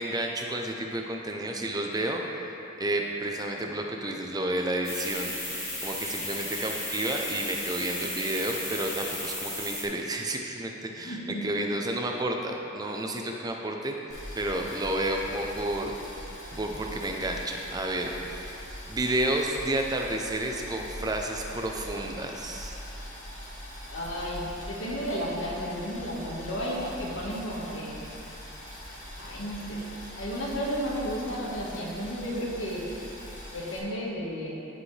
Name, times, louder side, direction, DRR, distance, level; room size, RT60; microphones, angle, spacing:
voice 1, 0.0-2.2 2.8-11.2 11.4-14.0 14.4-15.9 16.5-18.6 18.9-22.8, right 1 dB, 20° right, 1 dB, 0.5 m, -31 dB
sound 1, 4.8-9.8, left 1 dB, 15° left, 1.5 m, -35 dB
voice 2, 11.0-11.4 23.9-28.1 29.2-29.8 30.1-32.9 33.5-34.6, equal, 85° left, -4 dB, 1.6 m, -33 dB
Boiling, 14.1-33.8, equal, 40° left, 1.6 m, -42 dB
15.0 x 5.2 x 3.3 m, 2.8 s
head